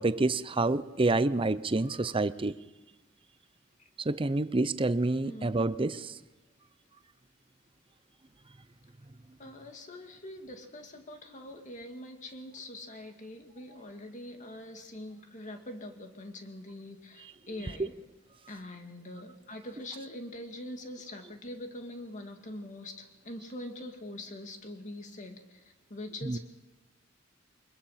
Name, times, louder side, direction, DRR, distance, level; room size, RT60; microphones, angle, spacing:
voice 1, 0.0-2.5 4.0-6.1 26.2-26.4, right 2 dB, 25° right, 0.7 m, -28 dB
voice 2, 5.2-5.6 9.4-17.9 18.5-26.4, left 1 dB, 40° left, 2.3 m, -43 dB
24.0 x 21.5 x 5.8 m
head